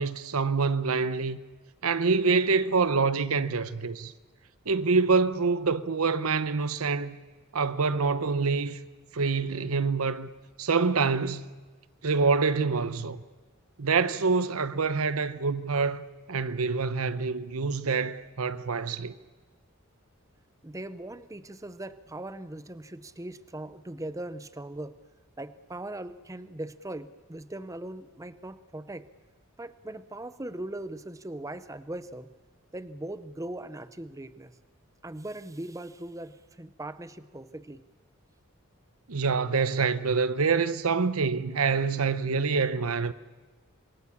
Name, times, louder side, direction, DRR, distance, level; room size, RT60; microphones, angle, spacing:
voice 1, 0.0-1.4 1.8-4.1 4.7-7.2 7.5-8.8 9.1-10.3 10.6-11.5 12.0-13.2 13.8-16.0 16.3-19.2 39.1-43.1, right 4 dB, 85° right, 0.9 m, -26 dB
voice 2, 20.6-25.0 25.4-29.1 29.6-32.3 32.7-34.5 35.0-37.8, right 1 dB, 15° right, 0.7 m, -39 dB
27.5 x 22.5 x 7.2 m
head